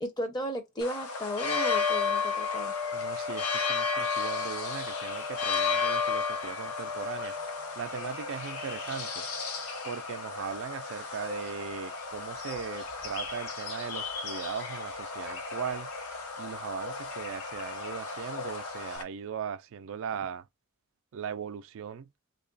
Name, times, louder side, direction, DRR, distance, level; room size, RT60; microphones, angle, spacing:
voice 1, 0.0-2.7, equal, 20° left, 0.5 m, -34 dB
sound 1, 0.8-19.0, left 5 dB, 90° left, 0.7 m, -33 dB
Insect, 2.4-19.0, left 4 dB, 70° left, 1.1 m, -49 dB
voice 2, 2.9-7.4 7.8-9.3 9.8-15.9 16.4-20.5 21.1-22.1, right 7 dB, 65° right, 0.3 m, -38 dB
3.2 x 2.2 x 3.8 m
head